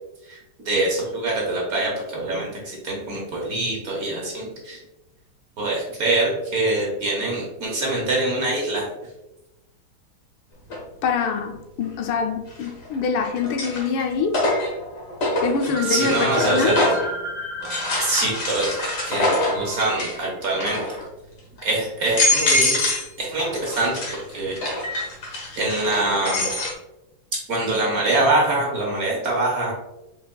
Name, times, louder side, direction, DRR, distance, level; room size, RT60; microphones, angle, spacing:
voice 1, 0.6-4.8 5.6-8.9 15.9-16.9 18.0-21.0 21.6-22.8 23.2-24.8 25.6-26.5 27.5-29.7, right 2 dB, 50° right, 1.4 m, -24 dB
sound 1, 10.7-10.8 12.5-13.0 13.4-17.1 17.6-20.2 20.5-21.0 21.6-21.7 22.0-23.1 23.4-26.7, left 2 dB, 45° left, 1.3 m, -24 dB
voice 2, 11.0-14.4 15.4-16.8, left 5 dB, 80° left, 1.4 m, -24 dB
sound 2, 13.3-14.2 14.5-14.6 15.8-20.7, right 2 dB, 75° right, 1.8 m, -33 dB
5.2 x 4.0 x 2.2 m
omnidirectional pair, 2.3 m